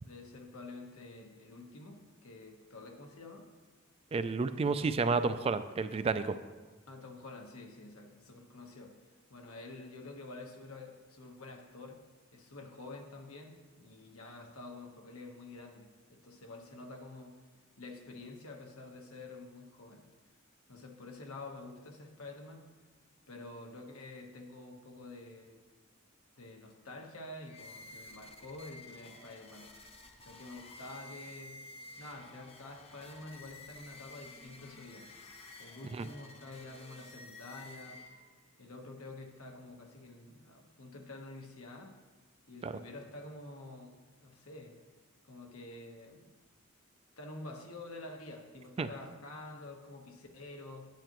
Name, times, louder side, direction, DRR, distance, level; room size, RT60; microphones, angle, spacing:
voice 1, 0.0-3.5 6.9-12.0 12.3-17.4 17.8-20.0 20.7-22.6 23.3-25.6 26.4-29.7 30.2-31.6 32.0-35.1 35.6-38.0 38.6-41.9 42.5-44.8 45.3-46.3 47.2-50.9, left 2 dB, 90° left, 2 dB, 1.2 m, -48 dB
voice 2, 4.1-6.4 35.9-36.0 42.6-42.7 48.8-48.9, right 4 dB, 30° right, 11 dB, 0.3 m, -31 dB
sound 1, 27.4-38.5, left 2 dB, 30° left, 0.7 m, -52 dB
10.0 x 8.9 x 3.0 m, 1.4 s
head